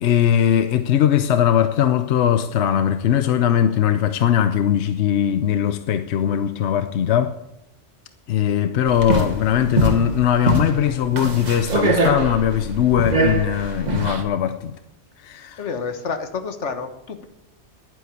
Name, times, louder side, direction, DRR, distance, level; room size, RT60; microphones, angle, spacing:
voice 1, 0.0-7.4 8.3-14.7 15.2-15.6, left 9 dB, 75° left, 1.0 m, -20 dB
sound 1, 8.9-14.2, right 2 dB, 40° right, 1.6 m, -23 dB
voice 2, 15.6-17.2, left 5 dB, 90° left, 1.6 m, -29 dB
11.0 x 9.7 x 8.3 m
omnidirectional pair, 1.2 m